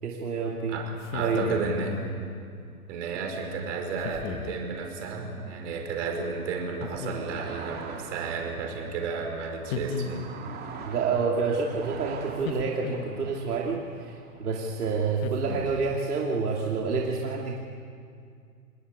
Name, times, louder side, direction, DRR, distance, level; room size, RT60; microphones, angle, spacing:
voice 1, 0.0-0.8 1.2-1.6 10.8-17.6, right 4 dB, 75° right, -1 dB, 3.0 m, -28 dB
voice 2, 0.7-2.0 2.9-10.3, right 4 dB, 50° right, 3 dB, 5.5 m, -32 dB
sound 1, 1.0-1.9 4.0-4.6 6.8-7.6 9.7-10.6 12.4-13.4 15.2-16.0, left 6 dB, 40° left, 1.6 m, -36 dB
sound 2, 5.3-16.8, right 5 dB, 20° right, 2.5 m, -45 dB
29.0 x 20.0 x 8.4 m, 2.2 s
hypercardioid pair, 140°, 47 cm